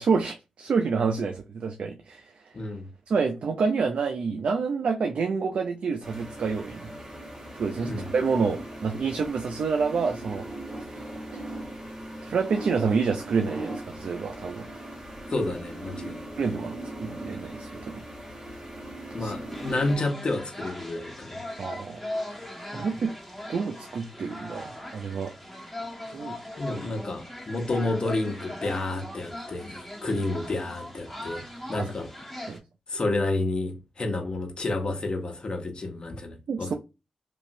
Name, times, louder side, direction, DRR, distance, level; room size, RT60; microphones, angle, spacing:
voice 1, 0.0-2.3 3.1-6.9 7.5-10.4 10.9-11.0 11.3-11.4 12.2-14.7 16.4-18.0 19.2-19.3 21.6-22.0 22.7-23.1 23.5-25.3 26.1-26.4 31.8-31.9 32.5-32.6 36.5-36.7, right 5 dB, 70° right, 0.4 m, -28 dB
voice 2, 2.5-2.9 7.8-8.0 15.3-16.3 19.1-21.4 22.7-22.8 26.6-32.1 32.9-36.7, left 2 dB, 50° left, 0.8 m, -30 dB
sound 1, 6.0-20.0, right 1 dB, 40° right, 1.2 m, -39 dB
sound 2, 19.5-32.6, left 1 dB, 5° left, 1.2 m, -39 dB
2.9 x 2.6 x 2.6 m
cardioid pair, 60°, 2 cm